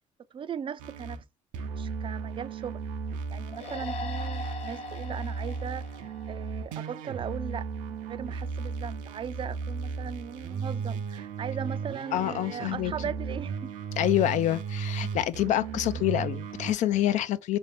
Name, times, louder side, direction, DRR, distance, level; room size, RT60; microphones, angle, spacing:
voice 1, 0.3-1.2 1.6-2.9 3.3-13.7, right 7 dB, 40° right, 0.4 m, -38 dB
sound 1, 0.8-1.2 1.5-16.7, right 5 dB, 85° right, 0.6 m, -35 dB
sound 2, 3.5-7.0, left 2 dB, 50° left, 0.8 m, -41 dB
voice 2, 12.1-12.9 14.0-17.6, left 13 dB, 70° left, 0.4 m, -27 dB
3.3 x 2.7 x 3.4 m
supercardioid pair, 75°, 13 cm